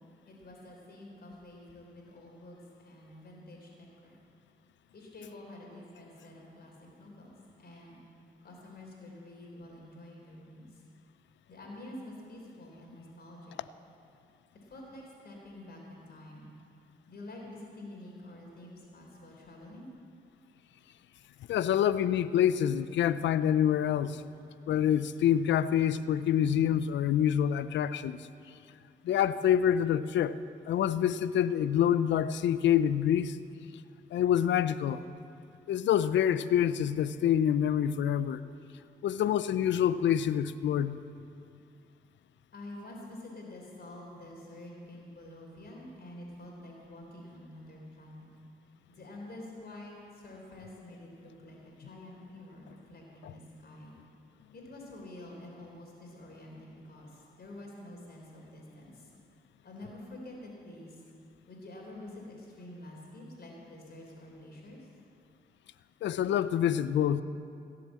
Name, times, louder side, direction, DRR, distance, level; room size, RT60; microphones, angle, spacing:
voice 1, 0.3-4.2 4.9-8.0 8.4-10.8 11.5-13.5 14.6-16.5 17.1-19.9 42.5-48.3 48.9-54.0 54.5-59.1 59.6-61.0 61.5-64.9, left 1 dB, 60° left, -1 dB, 4.0 m, -48 dB
voice 2, 21.5-24.2 24.7-28.2 29.0-30.4 30.7-33.4 34.1-35.0 35.7-38.4 39.0-41.0 53.2-53.3 66.0-67.2, left 10 dB, 75° left, 15 dB, 0.5 m, -26 dB
16.5 x 7.8 x 7.5 m, 2.5 s
supercardioid pair, 55°, 19 cm